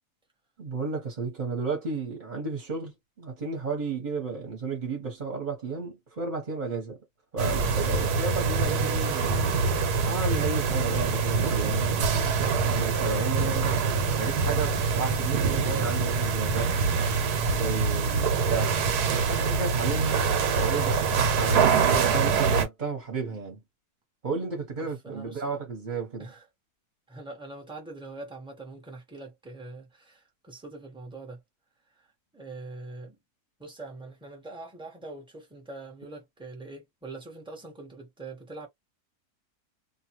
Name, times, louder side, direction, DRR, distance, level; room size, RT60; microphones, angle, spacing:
voice 1, 0.6-7.0 7.3-9.5 10.0-13.8 14.2-16.7 17.5-18.8 19.1-20.2 20.6-23.6 24.2-26.3, right 4 dB, 35° right, 0.9 m, -33 dB
sound 1, 7.4-22.7, right 5 dB, 90° right, 1.3 m, -25 dB
voice 2, 18.2-18.5 24.8-25.7 26.2-26.4 27.1-31.4 32.3-33.2 33.6-38.7, right 2 dB, 5° right, 0.6 m, -43 dB
2.5 x 2.3 x 2.9 m
omnidirectional pair, 1.7 m